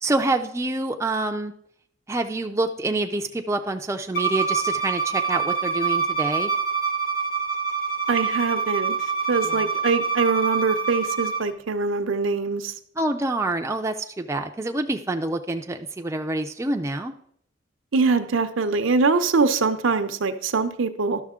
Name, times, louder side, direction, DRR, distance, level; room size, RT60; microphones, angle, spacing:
voice 1, 0.0-1.5 2.1-6.5 9.4-9.6 13.0-17.1, right 2 dB, 15° right, 4 dB, 0.4 m, -27 dB
Bowed string instrument, 4.1-11.4, right 5 dB, 45° left, 0.9 m, -25 dB
voice 2, 8.1-9.0 9.3-12.7 17.9-21.2, right 4 dB, 80° right, 9 dB, 0.6 m, -23 dB
11.5 x 6.4 x 3.7 m, 0.67 s
head